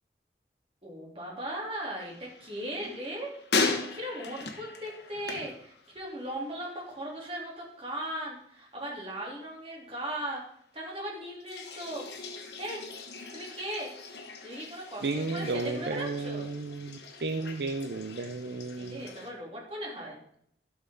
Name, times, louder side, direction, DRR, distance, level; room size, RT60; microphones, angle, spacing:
voice 1, 0.8-3.3 3.9-10.4 10.7-12.0 12.6-12.8 13.3-13.9 14.4-16.5 18.8-20.2, right 1 dB, 30° right, -3 dB, 3.1 m, -38 dB
sound 1, 2.0-6.4 6.7-7.3 11.4-19.3, left 4 dB, 65° left, 1.3 m, -38 dB
voice 2, 15.0-19.1, right 3 dB, 65° right, 7 dB, 0.6 m, -33 dB
12.5 x 6.3 x 3.8 m, 0.67 s
head